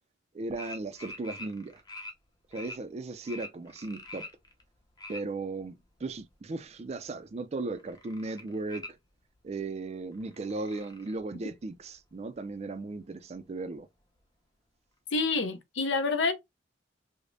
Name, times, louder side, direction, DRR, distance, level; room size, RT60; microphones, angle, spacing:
voice 1, 0.3-1.8 2.5-4.3 5.1-9.0 9.4-13.9, right 3 dB, 35° right, 0.4 m, -36 dB
sound 1, 0.6-2.1 2.5-2.8 3.2-5.2 5.6-6.7 7.0-7.4 7.7-8.9 9.4-9.5 9.7-9.8 10.1-11.4 11.7-11.8 12.0-12.1 12.8-12.9 13.3-13.4 13.8-13.9, left 2 dB, 20° left, 0.7 m, -44 dB
voice 2, 15.1-16.3, left 3 dB, 85° left, 0.6 m, -27 dB
4.9 x 2.1 x 2.5 m
head